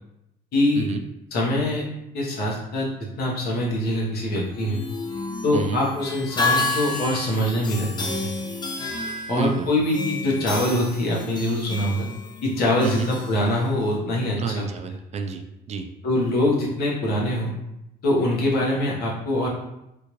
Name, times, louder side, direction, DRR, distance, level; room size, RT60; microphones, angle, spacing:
voice 1, 0.5-0.9 1.3-1.9 2.1-2.9 3.2-4.8 5.4-8.1 9.3-12.1 12.4-14.6 16.0-17.5 18.0-19.5, left 1 dB, 65° left, -3 dB, 1.1 m, -23 dB
sound 1, 4.4-14.0, left 3 dB, 25° left, 0.5 m, -31 dB
voice 2, 9.3-9.7 12.8-13.1 14.4-15.9, right 5 dB, 40° right, 5 dB, 0.4 m, -29 dB
3.6 x 2.5 x 3.0 m, 0.87 s
cardioid pair, 110°, 17 cm